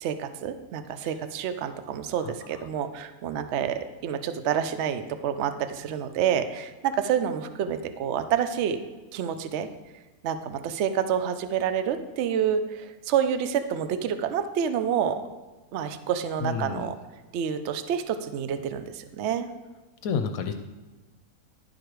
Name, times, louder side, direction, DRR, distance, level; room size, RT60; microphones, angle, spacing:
voice 1, 0.0-8.8 9.1-9.7 10.2-15.2 15.7-17.0 17.3-19.5, right 8 dB, 65° right, 9 dB, 0.7 m, -28 dB
voice 2, 16.4-16.9 20.0-20.5, left 6 dB, 75° left, 7 dB, 1.0 m, -29 dB
11.0 x 4.8 x 4.6 m, 1.2 s
omnidirectional pair, 1.6 m